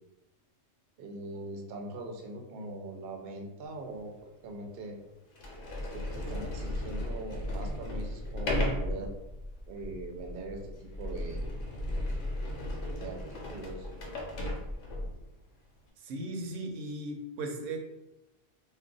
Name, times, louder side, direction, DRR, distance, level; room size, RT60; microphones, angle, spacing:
voice 1, 1.0-5.0 5.9-9.1 9.7-11.5 12.9-13.9, right 2 dB, 60° right, 3 dB, 0.7 m, -42 dB
Sliding door, 3.9-4.0 4.8-4.9 5.3-15.2, left 1 dB, 70° left, 1.0 m, -35 dB
voice 2, 16.0-17.8, right 2 dB, 90° right, 3 dB, 0.9 m, -37 dB
2.4 x 2.2 x 3.7 m, 0.94 s
omnidirectional pair, 1.3 m